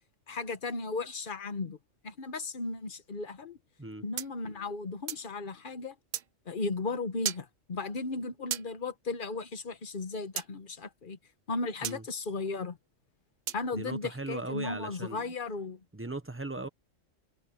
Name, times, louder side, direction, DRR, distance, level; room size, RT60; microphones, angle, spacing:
voice 1, 0.3-1.8 2.0-3.6 4.0-5.9 6.5-11.2 11.5-12.8 13.5-15.8, left 3 dB, 45° left, 1.2 m, -35 dB
sound 1, 4.2-5.3 6.1-6.3 7.2-7.5 8.5-8.7 10.4-10.5 11.8-12.0 13.5-13.7, right 9 dB, 60° right, 0.5 m, -35 dB
voice 2, 13.7-15.3 15.9-16.7, right 2 dB, 10° right, 0.9 m, -38 dB
omnidirectional pair, 1.3 m